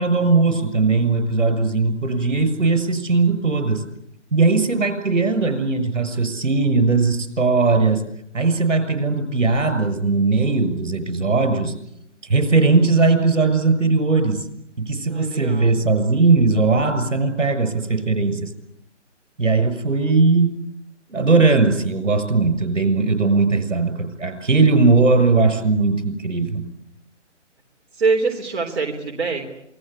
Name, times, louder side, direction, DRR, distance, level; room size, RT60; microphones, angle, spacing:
voice 1, 0.0-3.8 4.3-8.0 8.3-11.7 12.3-14.4 14.8-18.5 19.4-20.5 21.1-26.7, right 3 dB, 80° right, 9 dB, 6.8 m, -19 dB
voice 2, 15.1-15.7 28.0-29.5, right 4 dB, 55° right, 1 dB, 3.9 m, -23 dB
28.0 x 21.0 x 8.5 m, 0.79 s
hypercardioid pair, 150°, 37 cm